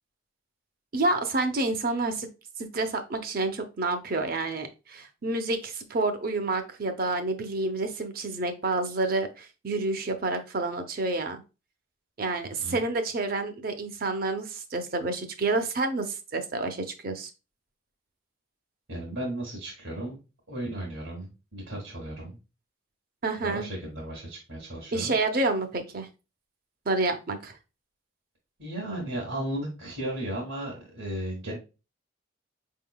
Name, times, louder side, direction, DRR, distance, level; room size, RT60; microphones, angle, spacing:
voice 1, 0.9-2.3 2.6-11.4 12.2-17.3 23.2-23.7 24.9-26.1 26.9-27.6, right 2 dB, 45° right, 7 dB, 0.6 m, -29 dB
voice 2, 18.9-20.2 20.5-22.4 23.4-25.1 28.6-31.6, right 1 dB, 80° right, -4 dB, 1.6 m, -35 dB
5.0 x 3.6 x 2.2 m, 0.30 s
head